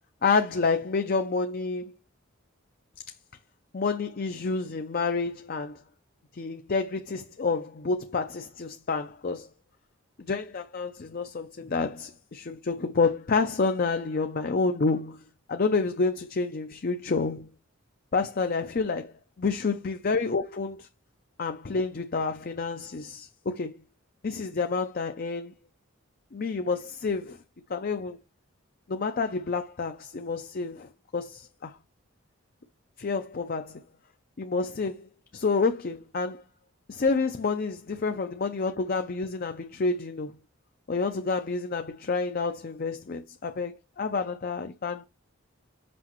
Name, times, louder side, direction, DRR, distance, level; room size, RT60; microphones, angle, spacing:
voice 1, 0.2-1.9 3.7-5.8 6.3-9.5 10.3-15.2 15.5-17.5 18.1-19.1 19.4-20.9 21.4-23.8 24.2-25.5 26.3-27.4 27.7-28.2 28.9-31.8 33.0-33.8 34.4-36.4 36.9-40.4 40.9-45.1, left 4 dB, 45° left, 0.5 m, -29 dB
6.0 x 5.3 x 3.0 m
head